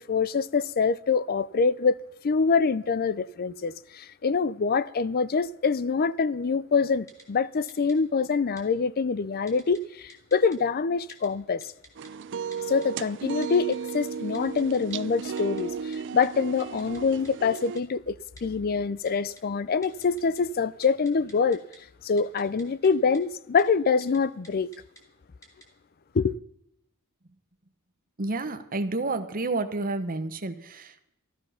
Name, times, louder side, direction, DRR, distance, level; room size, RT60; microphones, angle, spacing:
voice 1, 0.0-2.0 2.2-11.7 12.7-21.6 22.0-24.7 26.1-26.3, left 5 dB, 45° left, 0.4 m, -25 dB
Typing, 7.1-7.2 7.7-7.9 8.6-8.7 9.5-9.8 10.1-10.6 11.1-11.3 11.6-12.1 12.5-12.9 13.4-13.9 14.3-14.9 15.4-15.6 15.9-16.3 16.6-17.0 17.2-17.3 17.5-17.8 18.4-18.5 19.1-19.4 19.8-20.4 20.7-21.8 22.2-22.9 23.1-23.2 23.6-23.7 24.0-24.2 24.4-25.0 25.4-25.6, equal, 15° left, 2.1 m, -50 dB
sound 1, 12.0-17.8, right 6 dB, 55° right, 0.4 m, -35 dB
voice 2, 28.2-31.1, right 2 dB, 40° right, 1.0 m, -30 dB
13.5 x 12.5 x 5.7 m
head